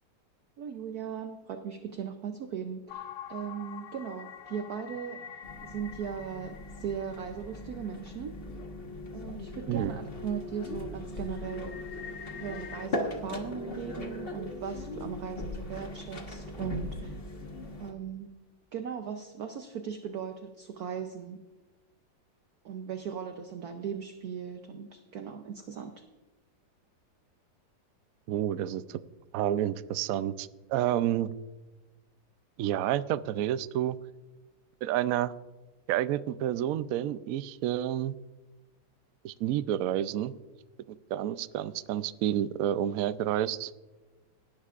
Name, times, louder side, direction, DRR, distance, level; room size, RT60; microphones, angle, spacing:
voice 1, 0.6-5.2 5.6-8.4 9.1-12.0 12.4-17.2 17.8-18.3 18.7-21.4 22.6-26.0, right 7 dB, 65° right, 6 dB, 1.1 m, -38 dB
sound 1, 2.9-8.7 9.2-9.3 9.8-10.1 10.4-12.9, left 8 dB, 65° left, 0.8 m, -46 dB
sound 2, 5.4-17.9, left 2 dB, 35° left, 1.4 m, -39 dB
voice 2, 28.3-29.0 29.3-31.3 32.6-34.0 34.8-35.3 35.9-38.1 39.2-40.3 40.9-43.7, right 11 dB, 85° right, 14 dB, 0.7 m, -29 dB
18.0 x 11.0 x 2.4 m, 1.2 s
omnidirectional pair, 2.1 m